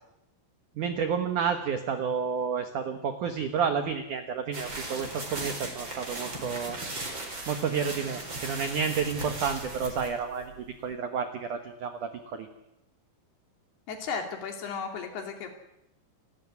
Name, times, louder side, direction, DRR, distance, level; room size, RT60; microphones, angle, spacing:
voice 1, 0.8-6.8 7.5-12.5, right 6 dB, 80° right, 7 dB, 1.8 m, -30 dB
sound 1, 4.5-10.9, right 2 dB, 25° right, 4.6 m, -38 dB
voice 2, 13.9-15.5, left 5 dB, 60° left, 4 dB, 4.4 m, -35 dB
28.5 x 13.0 x 9.6 m, 0.84 s
omnidirectional pair, 5.7 m